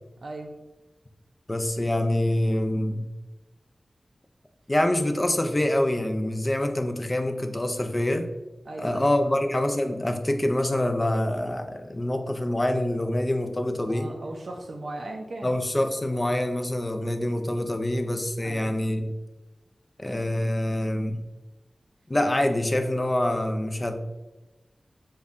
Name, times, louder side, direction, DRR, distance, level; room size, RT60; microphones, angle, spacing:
voice 1, 0.2-0.5 8.6-9.4 13.9-15.5 18.4-18.7, right 2 dB, 65° right, 1 dB, 0.3 m, -37 dB
voice 2, 1.5-3.1 4.7-8.3 8.8-14.1 15.4-19.1 20.0-21.2 22.1-24.0, left 1 dB, 25° left, 6 dB, 0.3 m, -25 dB
5.1 x 2.1 x 2.4 m, 1.1 s
wide cardioid pair, 90°, 0 cm